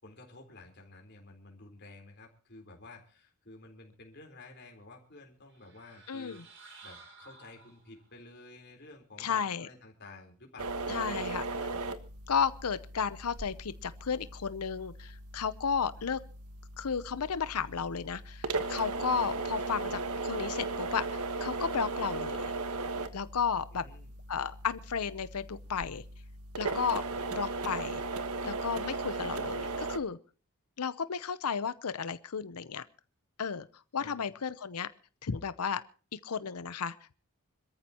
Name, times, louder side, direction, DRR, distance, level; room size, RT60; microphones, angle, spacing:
voice 1, 0.0-11.9 23.7-24.1 34.0-34.3, left 2 dB, 50° left, 2 dB, 3.9 m, -52 dB
sound 1, 5.5-8.1, right 4 dB, 55° right, 5.6 m, -54 dB
voice 2, 6.1-6.4 9.2-9.7 10.9-11.4 12.3-16.2 16.8-22.5 23.1-23.8 24.3-26.0 26.6-27.0 27.3-28.0 28.4-30.2 30.8-32.8 33.4-33.7 33.9-34.9 35.2-35.8 36.1-37.1, left 6 dB, 85° left, 15 dB, 0.7 m, -33 dB
sound 2, 10.6-30.0, right 3 dB, 80° right, 1.4 m, -37 dB
26.0 x 14.0 x 2.9 m, 0.37 s
head